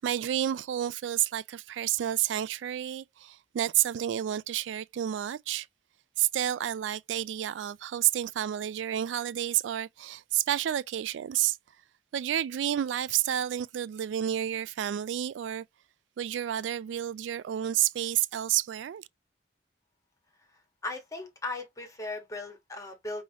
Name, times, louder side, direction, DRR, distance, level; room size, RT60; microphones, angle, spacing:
voice 1, 0.0-5.7 6.2-11.6 12.1-15.6 16.2-19.1, right 11 dB, 80° right, 0.3 m, -30 dB
voice 2, 20.8-23.2, left 2 dB, 20° left, 1.4 m, -37 dB
5.5 x 3.1 x 2.9 m
head